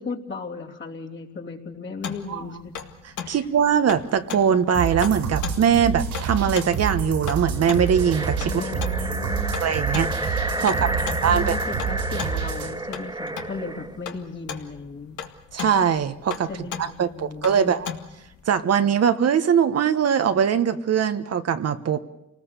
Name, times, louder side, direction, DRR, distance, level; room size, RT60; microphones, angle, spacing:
voice 1, 0.0-2.7 3.2-3.5 8.4-9.6 10.6-15.2 16.5-17.8, left 4 dB, 40° left, 0 dB, 3.1 m, -36 dB
sound 1, 2.0-18.4, left 7 dB, 75° left, 2.0 m, -38 dB
voice 2, 3.3-8.6 9.6-11.0 11.2-11.6 15.5-16.5 16.8-17.9 18.5-22.0, right 7 dB, 55° right, 9 dB, 1.3 m, -21 dB
sound 2, 4.7-12.7, right 6 dB, 80° right, 4.7 m, -28 dB
sound 3, 7.5-14.0, right 2 dB, 15° right, 1.8 m, -30 dB
28.0 x 19.5 x 6.8 m, 0.87 s
cardioid pair, 90°, 30 cm